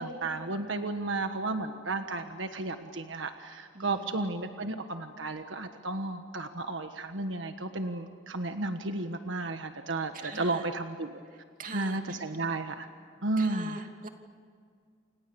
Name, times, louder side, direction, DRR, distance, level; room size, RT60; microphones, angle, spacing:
voice 1, 0.0-11.2 11.7-12.9 13.2-13.8, right 2 dB, 85° right, 7 dB, 1.5 m, -33 dB
voice 2, 3.7-4.2 10.1-10.7 11.6-12.2 13.4-14.1, right 3 dB, 45° right, 4 dB, 2.8 m, -42 dB
29.5 x 28.0 x 7.1 m, 2.2 s
head